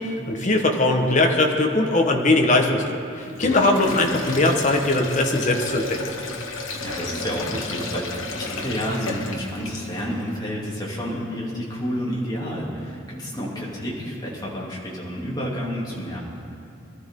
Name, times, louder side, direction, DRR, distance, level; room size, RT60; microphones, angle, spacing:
voice 1, 0.0-6.0, left 2 dB, 40° left, 2 dB, 1.3 m, -20 dB
Sink (filling or washing), 3.3-10.1, left 3 dB, 80° left, 1.3 m, -32 dB
voice 2, 6.8-16.2, equal, 20° left, -5 dB, 2.9 m, -30 dB
23.0 x 13.0 x 3.8 m, 2.7 s
head